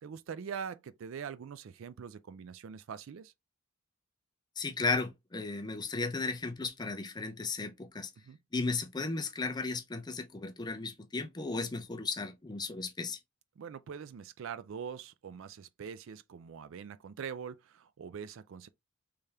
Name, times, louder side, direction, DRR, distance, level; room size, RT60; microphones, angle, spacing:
voice 1, 0.0-3.3 8.2-8.4 13.6-18.7, right 7 dB, 60° right, 0.3 m, -43 dB
voice 2, 4.6-8.1 8.5-13.2, left 3 dB, 20° left, 0.5 m, -35 dB
3.5 x 3.3 x 2.7 m
head